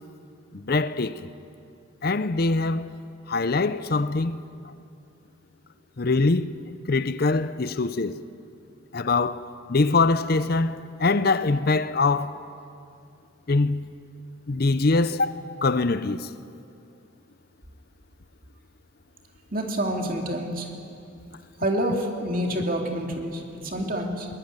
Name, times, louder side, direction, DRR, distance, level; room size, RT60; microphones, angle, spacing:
voice 1, 0.5-1.2 2.0-2.9 3.3-4.4 6.0-6.5 6.9-8.2 8.9-9.4 9.7-12.3 13.5-13.9 14.5-16.3, left 3 dB, 50° left, 0.6 m, -23 dB
voice 2, 19.5-20.7 21.6-24.3, right 1 dB, 45° right, 2.7 m, -27 dB
21.5 x 20.0 x 9.1 m
head